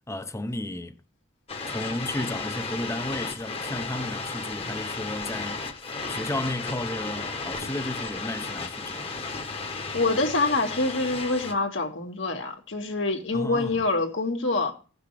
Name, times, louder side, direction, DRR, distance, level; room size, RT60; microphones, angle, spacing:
voice 1, 0.1-1.0 1.7-5.7 6.1-9.2 13.3-13.8, left 1 dB, 15° left, 0.6 m, -33 dB
sound 1, 1.5-11.5, left 3 dB, 30° left, 1.1 m, -34 dB
voice 2, 9.9-14.7, left 3 dB, 75° left, 1.9 m, -26 dB
16.5 x 6.0 x 3.3 m
head